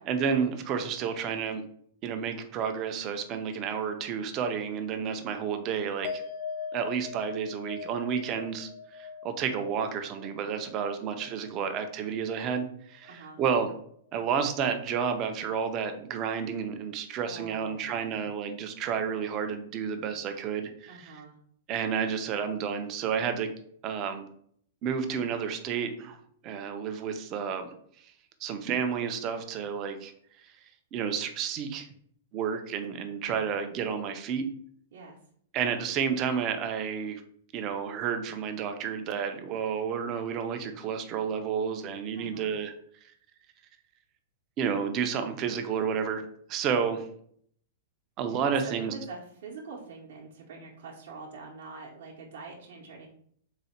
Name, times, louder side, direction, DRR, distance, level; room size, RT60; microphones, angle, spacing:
voice 1, 0.0-1.6 2.0-6.2 6.7-13.7 14.1-21.2 21.7-23.5 23.8-24.3 24.8-26.2 26.4-27.7 28.0-28.1 28.4-30.1 30.4-30.5 30.9-31.9 32.3-34.5 35.5-37.2 37.5-42.7 44.6-46.2 46.5-47.1 48.2-48.9, right 7 dB, 25° right, 7 dB, 0.4 m, -31 dB
sound 1, 6.0-12.7 13.0-13.7, left 6 dB, 55° left, 0.4 m, -42 dB
voice 2, 13.1-13.4 17.3-18.2 20.9-21.3 34.9-35.2 42.2-42.5 48.3-53.1, right 4 dB, 55° right, -3 dB, 0.7 m, -45 dB
3.9 x 2.1 x 4.1 m, 0.63 s
supercardioid pair, 175°, 0 cm